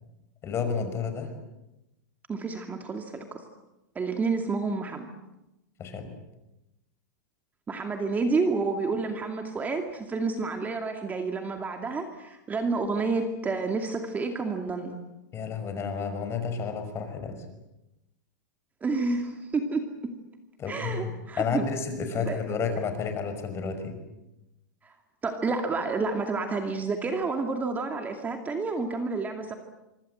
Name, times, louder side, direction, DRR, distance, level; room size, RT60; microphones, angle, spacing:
voice 1, 0.4-1.3 5.8-6.1 15.3-17.4 20.6-23.9, left 5 dB, 25° left, 7 dB, 5.6 m, -31 dB
voice 2, 2.3-3.4 3.9-5.1 7.7-15.0 18.8-20.1 20.7-21.6 22.2-22.4 24.8-24.9 25.2-29.5, right 4 dB, 15° right, 5 dB, 2.4 m, -29 dB
25.5 x 25.0 x 7.9 m, 0.94 s
hypercardioid pair, 135°, 10 cm